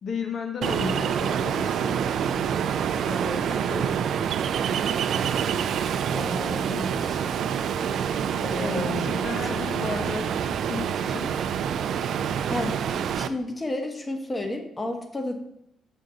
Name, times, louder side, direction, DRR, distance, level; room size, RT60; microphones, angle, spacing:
voice 1, 0.0-2.0 3.5-3.9 8.5-10.3 10.6-11.3, left 5 dB, 55° left, 4 dB, 0.6 m, -33 dB
Ocean, 0.6-13.3, right 8 dB, 70° right, 0.4 m, -27 dB
voice 2, 3.0-3.4 6.1-7.2 8.4-10.2 12.5-15.4, left 1 dB, 20° left, 5 dB, 1.0 m, -33 dB
6.7 x 5.2 x 3.8 m, 0.78 s
cardioid pair, 90°, 0 cm